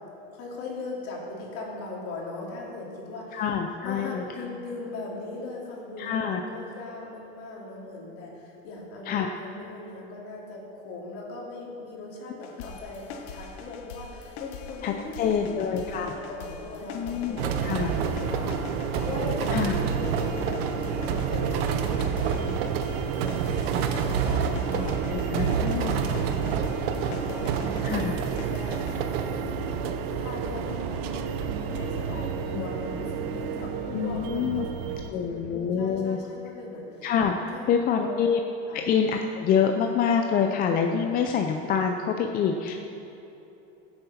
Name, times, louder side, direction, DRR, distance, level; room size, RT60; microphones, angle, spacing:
voice 1, 0.3-3.4 3.8-22.6 23.6-25.2 25.7-26.6 27.0-27.6 28.5-31.1 31.6-37.1 37.3-38.1 38.7-38.9 42.6-42.8, left 3 dB, 50° left, -3 dB, 2.8 m, -39 dB
voice 2, 3.3-4.2 6.0-6.4 9.1-9.3 14.8-16.1 16.9-17.9 19.5-19.7 24.7-26.0 27.8-28.2 33.9-34.7 35.1-36.2 37.0-38.4 38.7-42.7, left 7 dB, 30° left, 4 dB, 0.5 m, -26 dB
sound 1, 12.4-29.0, left 4 dB, 85° left, 1.3 m, -42 dB
sound 2, 17.4-35.1, right 6 dB, 85° right, 0.9 m, -29 dB
sound 3, 17.6-35.1, right 7 dB, 50° right, 0.8 m, -38 dB
15.5 x 7.8 x 4.2 m, 3.0 s
supercardioid pair, 140°, 30 cm